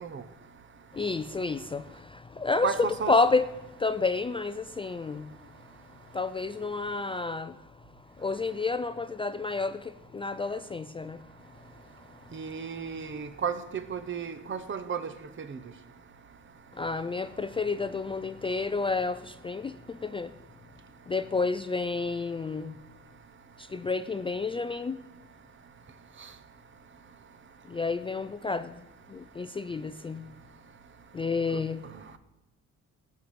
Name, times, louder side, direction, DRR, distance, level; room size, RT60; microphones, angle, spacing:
voice 1, 0.9-5.4 5.9-11.3 11.6-12.8 16.7-20.3 21.1-22.8 23.6-25.0 27.7-28.8 29.1-30.3 31.1-31.8, left 4 dB, 20° left, 0.3 m, -30 dB
voice 2, 2.6-3.1 12.3-15.0 15.5-15.6, right 6 dB, 40° right, 0.9 m, -33 dB
13.0 x 4.6 x 8.6 m
cardioid pair, 90°, 30 cm